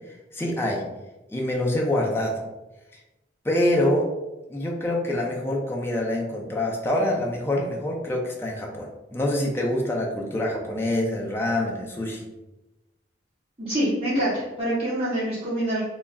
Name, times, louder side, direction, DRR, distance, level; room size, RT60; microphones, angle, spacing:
voice 1, 0.3-0.8 1.3-2.3 3.4-4.1 4.5-12.3, left 1 dB, 15° left, -1 dB, 0.4 m, -25 dB
voice 2, 13.7-15.8, right 1 dB, 35° right, -10 dB, 1.0 m, -25 dB
2.2 x 2.0 x 3.5 m, 1.0 s
head